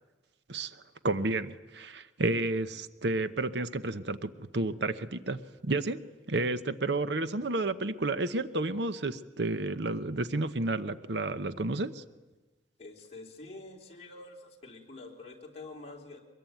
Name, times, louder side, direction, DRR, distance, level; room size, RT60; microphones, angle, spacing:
voice 1, 0.5-12.0, right 2 dB, 70° right, 12 dB, 0.9 m, -31 dB
voice 2, 12.8-16.2, left 2 dB, 35° left, -1 dB, 3.7 m, -47 dB
23.5 x 22.0 x 9.2 m, 1.2 s
head